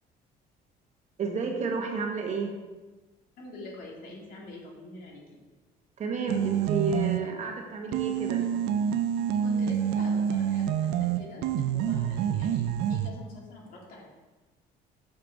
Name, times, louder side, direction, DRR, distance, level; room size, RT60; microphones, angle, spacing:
voice 1, 1.2-2.5 6.0-8.4, right 4 dB, 45° right, 2 dB, 1.1 m, -31 dB
voice 2, 3.4-5.4 9.4-11.4 11.7-14.0, left 2 dB, 60° left, -3 dB, 2.2 m, -45 dB
sound 1, 6.3-7.4 7.9-13.1, right 9 dB, 85° right, 0.4 m, -27 dB
6.6 x 5.9 x 3.5 m, 1.2 s
cardioid pair, 110°, 17 cm